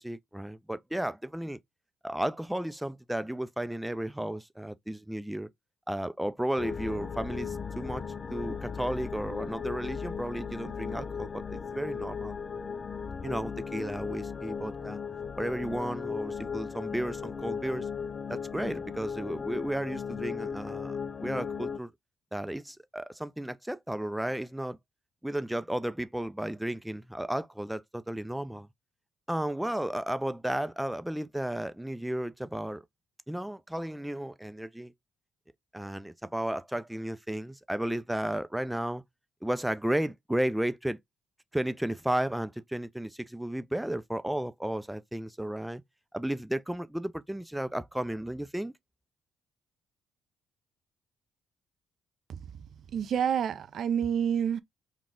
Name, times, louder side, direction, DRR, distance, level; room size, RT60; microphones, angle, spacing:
voice 1, 0.0-1.6 2.0-5.5 5.9-8.0 8.3-12.3 13.2-15.0 15.4-17.9 18.3-21.9 22.3-24.8 25.2-28.7 29.3-32.8 33.3-34.9 35.7-39.0 39.4-41.0 41.5-45.8 46.1-48.7, right 1 dB, 5° right, 0.5 m, -33 dB
sound 1, 6.6-21.8, left 6 dB, 45° left, 0.4 m, -37 dB
voice 2, 52.9-54.6, right 8 dB, 65° right, 0.5 m, -28 dB
3.9 x 2.4 x 3.7 m
supercardioid pair, 55°, 0 cm